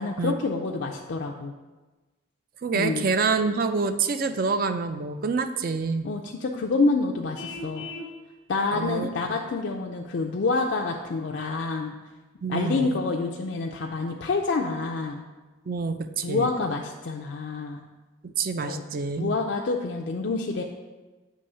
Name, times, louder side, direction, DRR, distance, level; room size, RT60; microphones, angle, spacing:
voice 1, 0.0-1.5 2.7-3.1 6.0-7.9 8.5-11.9 12.5-15.2 16.2-17.8 18.6-18.8 19.2-20.6, left 3 dB, 60° left, 1 dB, 0.4 m, -27 dB
voice 2, 2.6-6.1 8.7-9.3 12.4-13.0 15.7-16.5 18.2-19.4, right 4 dB, 45° right, 9 dB, 0.4 m, -27 dB
Vehicle horn car horn honking, 7.3-8.1, left 3 dB, 90° left, 0.9 m, -37 dB
8.1 x 3.1 x 5.4 m, 1.2 s
head